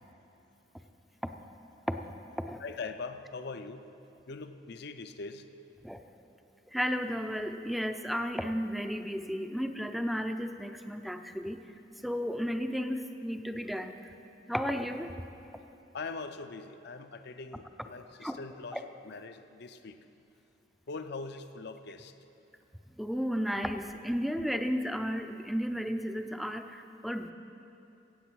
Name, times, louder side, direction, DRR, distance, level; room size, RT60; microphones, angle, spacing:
voice 1, 2.6-3.8 4.3-5.5 15.9-20.0 20.9-22.1, left 4 dB, 60° left, 9 dB, 0.6 m, -42 dB
voice 2, 6.7-11.6 12.0-13.9 14.5-15.1 18.2-18.4 18.7-18.8 23.0-27.3, equal, ahead, 7 dB, 0.5 m, -33 dB
16.5 x 7.9 x 6.2 m, 2.8 s
head